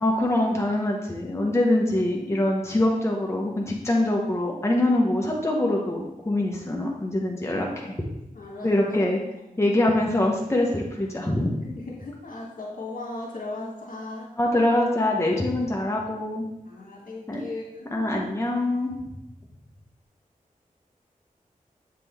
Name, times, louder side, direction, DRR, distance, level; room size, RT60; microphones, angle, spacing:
voice 1, 0.0-7.9 8.6-9.2 9.6-11.6 14.4-16.5 17.3-17.4 17.9-18.9, left 1 dB, 20° left, -1 dB, 0.9 m, -24 dB
voice 2, 8.4-9.7 11.6-14.3 16.7-17.9, left 2 dB, 75° left, -3 dB, 1.7 m, -37 dB
7.3 x 3.8 x 3.4 m, 0.88 s
wide cardioid pair, 70°, 14 cm